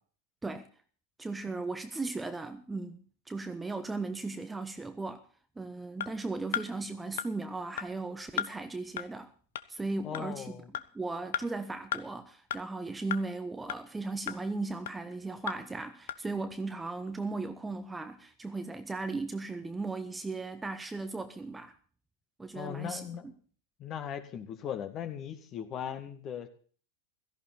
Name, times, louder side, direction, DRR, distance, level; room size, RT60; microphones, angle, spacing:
voice 1, 1.2-5.2 5.6-9.3 9.7-10.6 10.9-21.7 22.4-23.0, right 3 dB, 10° right, 1.2 m, -37 dB
sound 1, 6.0-6.1 6.5-6.7 7.2-7.3 7.8-7.9 8.4-8.5 9.0-9.1 9.6-9.7 10.1-10.3 10.7-10.9 11.3-11.4 11.9-12.0 12.5-12.6 13.1-13.2 13.7-13.8 14.3-14.4 14.9-15.0 15.5-15.6 16.1-16.2, left 11 dB, 60° left, 0.9 m, -33 dB
voice 2, 10.0-10.7 22.5-23.3 23.8-26.5, left 9 dB, 30° left, 2.2 m, -38 dB
17.0 x 14.0 x 4.1 m
figure-of-eight pair, 90°, 0 cm